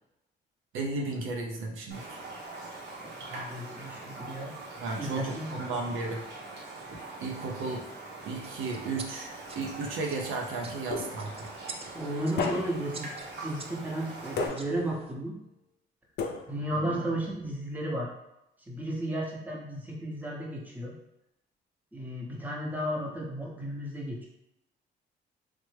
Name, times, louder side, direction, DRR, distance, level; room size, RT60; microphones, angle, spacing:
voice 1, 0.7-2.2 4.8-6.2 7.2-7.8 8.3-11.5 16.7-17.1, right 3 dB, 85° right, 0 dB, 0.6 m, -34 dB
Raindrop, 1.9-14.5, right 2 dB, 60° right, 0.9 m, -43 dB
voice 2, 3.0-4.5 5.0-5.6 11.9-13.1 13.4-15.4 16.5-18.1 18.7-20.9 21.9-24.3, right 1 dB, 10° right, -3 dB, 0.8 m, -34 dB
sound 1, 8.2-15.1, right 4 dB, 30° right, 0.4 m, -48 dB
sound 2, 10.9-11.5 12.4-13.0 14.4-15.0 16.2-16.8, left 4 dB, 55° left, 0.4 m, -33 dB
3.2 x 2.0 x 3.2 m, 0.87 s
cardioid pair, 90°, 20 cm